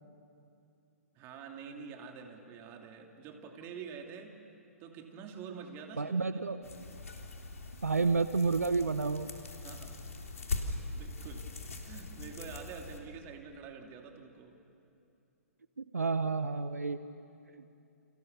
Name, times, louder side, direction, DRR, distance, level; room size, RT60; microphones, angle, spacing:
voice 1, 1.1-4.4 4.8-6.4 9.6-10.1 10.9-11.5 11.9-14.6, right 6 dB, 30° right, 3 dB, 3.0 m, -47 dB
voice 2, 6.0-6.6 7.8-9.3 15.8-17.0 17.6-17.7, right 4 dB, 80° right, 12 dB, 1.0 m, -30 dB
sound 1, 6.6-13.0, left 3 dB, 70° left, 3.5 m, -41 dB
30.0 x 28.5 x 7.0 m, 2.7 s
figure-of-eight pair, 125°, 8 cm